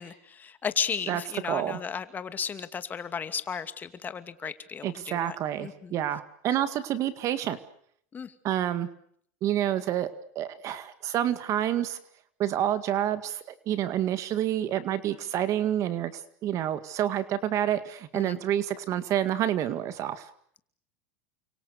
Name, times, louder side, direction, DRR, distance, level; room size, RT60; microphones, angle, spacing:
voice 1, 0.0-5.9 8.1-8.3 18.1-18.4, left 6 dB, 20° left, 11 dB, 2.5 m, -34 dB
voice 2, 1.5-1.8 4.4-4.5 4.8-7.6 8.4-8.9 9.4-10.1 10.4-12.0 12.4-20.3, right 11 dB, 40° right, 12 dB, 2.1 m, -28 dB
30.0 x 25.5 x 6.7 m, 0.65 s
supercardioid pair, 130°, 8 cm